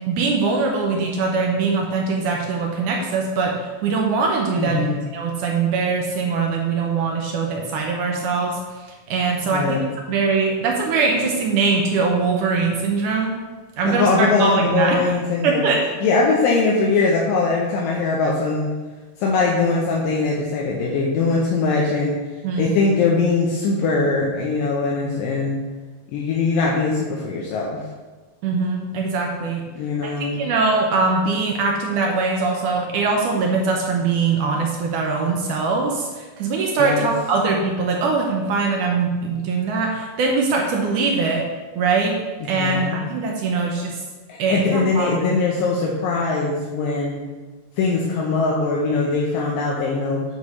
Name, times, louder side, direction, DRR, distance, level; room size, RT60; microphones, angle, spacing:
voice 1, 0.1-4.9 5.1-13.4 13.8-15.0 15.4-15.8 22.4-22.7 28.4-29.6 30.0-41.5 41.8-42.2 42.4-44.0 44.4-45.4, right 4 dB, 75° right, 0 dB, 1.9 m, -22 dB
voice 2, 4.6-5.0 9.5-9.8 13.8-15.7 16.0-18.7 19.2-22.2 22.6-25.6 26.1-27.8 29.8-30.4 36.8-37.1 42.6-43.0 44.3-47.2 47.8-50.2, left 3 dB, 80° left, -2 dB, 2.3 m, -21 dB
8.4 x 3.2 x 5.4 m, 1.3 s
omnidirectional pair, 4.2 m